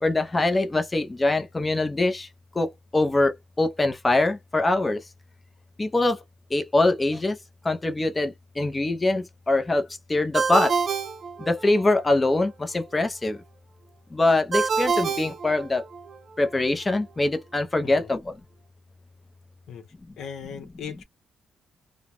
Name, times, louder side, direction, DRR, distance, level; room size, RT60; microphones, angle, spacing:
voice 1, 0.0-2.3 2.6-2.7 2.9-5.0 5.8-6.2 6.5-7.4 7.6-10.7 11.4-13.4 14.1-15.8 16.4-18.3, left 2 dB, 20° left, 0.5 m, -23 dB
Ringtone, 10.3-12.0 14.5-16.2, right 5 dB, 50° right, 0.5 m, -27 dB
voice 2, 20.2-21.0, left 7 dB, 75° left, 0.7 m, -38 dB
2.2 x 2.0 x 2.8 m
cardioid pair, 90°, 0 cm